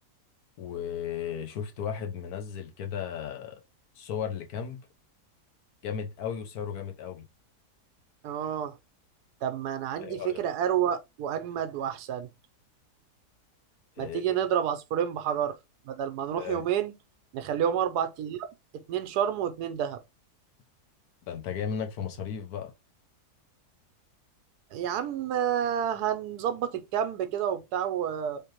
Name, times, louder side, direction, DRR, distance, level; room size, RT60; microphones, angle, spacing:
voice 1, 0.6-3.6 4.0-4.8 5.8-7.3 10.0-10.4 14.0-14.2 16.4-16.6 21.3-22.7, left 8 dB, 70° left, 1.2 m, -35 dB
voice 2, 8.2-8.8 9.4-12.3 14.0-15.6 15.8-16.9 17.3-18.5 18.7-20.0 24.7-28.4, right 9 dB, 80° right, 1.1 m, -29 dB
3.6 x 3.2 x 2.9 m
omnidirectional pair, 1.7 m